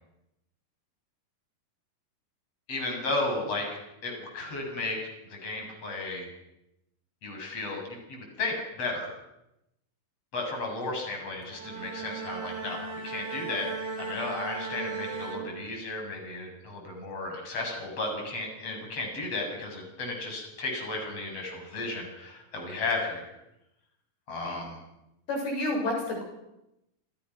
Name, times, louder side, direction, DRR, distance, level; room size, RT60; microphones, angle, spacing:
voice 1, 2.7-3.7 4.0-6.3 7.2-9.1 10.3-13.7 14.0-23.3 24.3-24.8, left 2 dB, 40° left, 1 dB, 8.2 m, -34 dB
Bowed string instrument, 11.4-16.1, right 4 dB, 40° right, 6.4 m, -37 dB
voice 2, 25.3-26.2, left 1 dB, 80° left, 1 dB, 8.5 m, -29 dB
29.5 x 28.5 x 6.1 m, 0.87 s
omnidirectional pair, 4.4 m